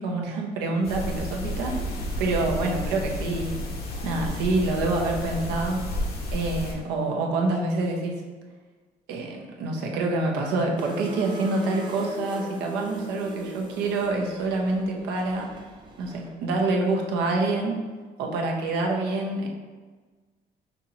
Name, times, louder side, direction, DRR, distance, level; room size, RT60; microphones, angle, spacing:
voice 1, 0.0-3.6 4.0-5.8 6.3-8.2 9.1-15.5 16.0-17.8 18.2-19.5, right 2 dB, 90° right, 0 dB, 0.7 m, -26 dB
sound 1, 0.8-6.7, equal, 65° left, 0.9 m, -32 dB
sound 2, 10.8-17.1, right 3 dB, 30° right, 0.6 m, -40 dB
5.5 x 2.8 x 2.7 m, 1.4 s
cardioid pair, 110°, 17 cm